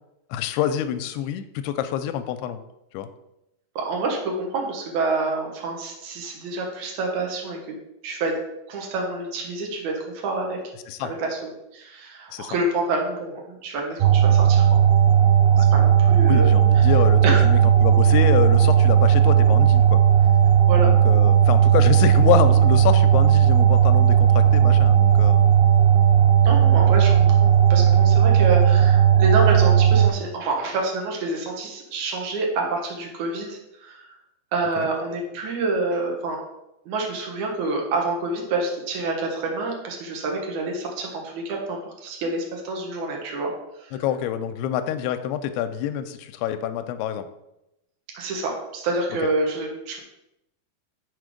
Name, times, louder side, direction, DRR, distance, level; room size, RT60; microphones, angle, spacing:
voice 1, 0.3-2.6 2.9-3.1 10.9-11.1 12.3-12.6 15.6-15.7 16.3-20.0 20.8-25.4 34.8-34.9 43.9-47.3, left 10 dB, 85° left, 9 dB, 2.5 m, -26 dB
voice 2, 3.8-7.6 8.0-8.3 8.7-9.9 10.2-10.6 11.0-14.7 15.5-16.5 17.2-17.4 20.7-20.9 26.4-34.0 34.5-36.4 36.9-43.5 48.1-50.0, right 3 dB, 60° right, 0 dB, 2.2 m, -27 dB
sound 1, 14.0-30.1, right 9 dB, 80° right, 2.3 m, -16 dB
6.3 x 4.6 x 5.0 m, 0.88 s
omnidirectional pair, 4.7 m